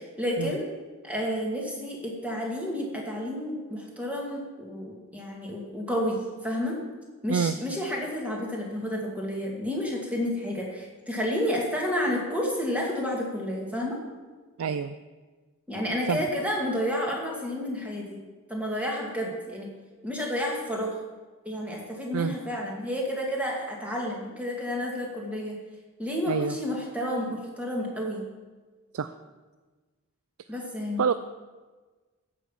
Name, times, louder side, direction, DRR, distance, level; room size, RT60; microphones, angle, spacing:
voice 1, 0.2-0.7 1.0-6.8 7.2-14.0 15.7-18.2 18.5-19.7 20.0-20.9 21.5-25.6 26.0-28.2 30.5-31.0, equal, 5° right, -2 dB, 2.3 m, -30 dB
voice 2, 14.6-14.9 16.1-16.2 22.1-22.4 26.3-26.6 28.9-29.1 31.0-31.1, right 6 dB, 85° right, 12 dB, 0.4 m, -26 dB
14.5 x 5.9 x 7.3 m, 1.3 s
head